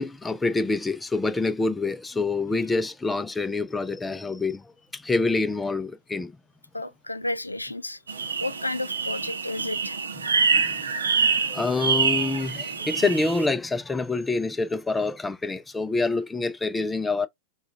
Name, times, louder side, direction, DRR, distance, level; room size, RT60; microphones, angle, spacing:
voice 1, 0.0-6.3 10.5-17.3, left 3 dB, 10° left, 0.3 m, -27 dB
voice 2, 6.7-8.0 8.4-10.0, left 2 dB, 85° left, 0.3 m, -32 dB
sound 1, 8.1-13.5, right 5 dB, 70° right, 0.6 m, -26 dB
4.7 x 2.2 x 2.5 m
figure-of-eight pair, 90°, 0 cm